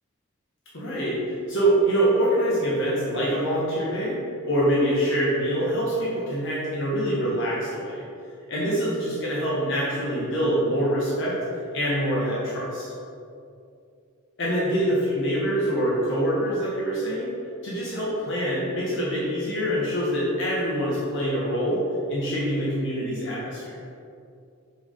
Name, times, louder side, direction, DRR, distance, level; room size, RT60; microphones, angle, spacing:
voice 1, 0.7-1.2 1.5-4.2 4.4-8.0 8.5-11.4 11.7-12.9 14.4-17.3 17.6-21.8 22.1-23.7, right 1 dB, 60° left, -7 dB, 1.3 m, -25 dB
6.1 x 5.2 x 3.7 m, 2.5 s
head